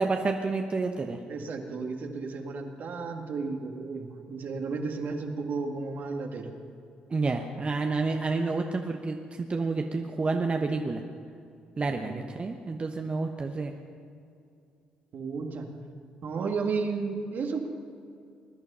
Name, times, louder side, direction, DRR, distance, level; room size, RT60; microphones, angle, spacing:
voice 1, 0.0-1.2 7.1-11.0 11.8-13.7, right 3 dB, 35° right, 4 dB, 1.0 m, -29 dB
voice 2, 1.3-6.5 12.0-12.2 15.1-15.7 16.2-17.7, right 4 dB, 60° right, 3 dB, 1.9 m, -33 dB
21.0 x 11.0 x 5.6 m, 2.5 s
supercardioid pair, 60°, 3 cm